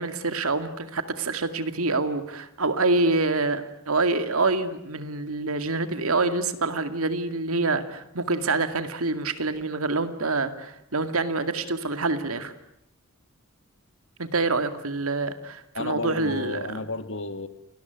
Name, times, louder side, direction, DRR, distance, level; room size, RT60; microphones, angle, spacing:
voice 1, 0.0-12.5 14.2-16.8, right 3 dB, 80° right, 10 dB, 2.3 m, -26 dB
voice 2, 15.8-17.5, left 2 dB, 60° left, 11 dB, 1.7 m, -32 dB
29.0 x 20.5 x 9.3 m, 0.77 s
head